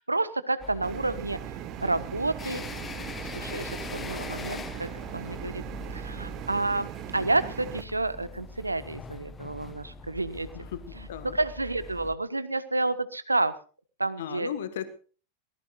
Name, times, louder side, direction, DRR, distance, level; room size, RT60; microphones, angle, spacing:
voice 1, 0.0-2.6 3.2-5.6 5.9-10.5 10.9-13.6 14.0-14.5, right 2 dB, 80° right, 14 dB, 1.3 m, -30 dB
sound 1, 0.6-12.1, left 4 dB, 20° left, 1.7 m, -42 dB
sound 2, 0.8-7.8, right 13 dB, 40° right, 1.1 m, -39 dB
voice 2, 14.2-14.9, left 9 dB, 60° left, 12 dB, 1.5 m, -35 dB
23.5 x 19.0 x 2.5 m, 0.38 s
figure-of-eight pair, 90°, 0 cm